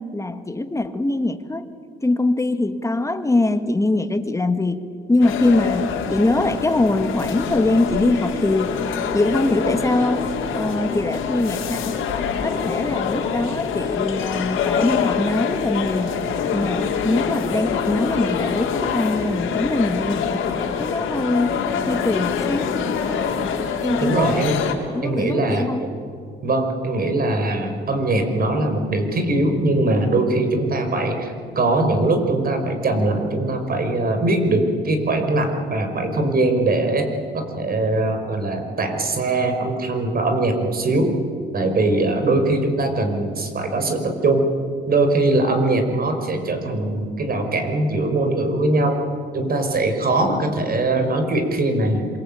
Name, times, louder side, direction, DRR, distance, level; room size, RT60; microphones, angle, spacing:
voice 1, 0.0-1.6 2.0-8.7 9.1-10.3 10.5-12.0 12.4-16.3 16.5-21.6 21.9-22.8 23.8-24.5 24.9-25.9, left 2 dB, 15° left, 8 dB, 2.0 m, -22 dB
sound 1, 5.2-24.7, left 6 dB, 85° left, 3.6 m, -25 dB
voice 2, 24.0-24.6 25.0-25.9 26.4-37.1 37.3-41.1 41.5-44.5 44.9-49.0 49.3-52.1, right 2 dB, 50° right, 6 dB, 5.2 m, -21 dB
26.5 x 23.5 x 8.7 m, 2.3 s
cardioid pair, 90°, 20 cm